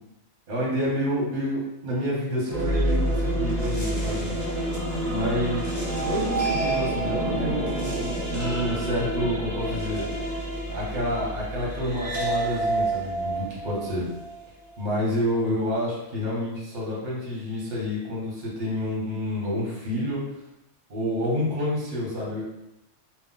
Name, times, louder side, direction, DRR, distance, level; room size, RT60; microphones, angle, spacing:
voice 1, 0.5-4.3 5.1-5.7 6.0-10.0 10.7-14.1 14.8-20.2 20.9-22.4, left 1 dB, 50° right, -5 dB, 0.9 m, -28 dB
sound 1, 2.5-14.6, right 1 dB, 20° right, 0.5 m, -28 dB
2.3 x 2.0 x 3.7 m, 0.89 s
omnidirectional pair, 1.2 m